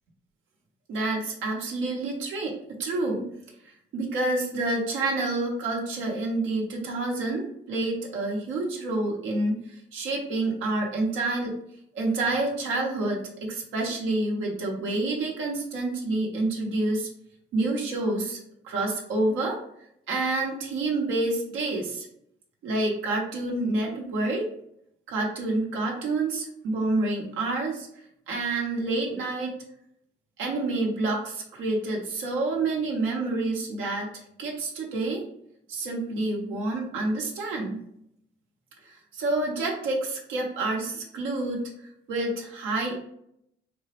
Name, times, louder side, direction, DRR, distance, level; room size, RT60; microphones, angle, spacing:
voice 1, 0.9-3.3 3.6-11.5 11.9-17.1 17.5-18.4 18.6-19.6 20.1-22.1 22.6-24.5 25.1-27.9 28.3-29.5 30.4-35.2 35.7-37.8 38.8-41.6 42.1-43.0, right 2 dB, 85° right, -1 dB, 0.7 m, -28 dB
3.6 x 2.0 x 2.8 m, 0.73 s
cardioid pair, 90°, 20 cm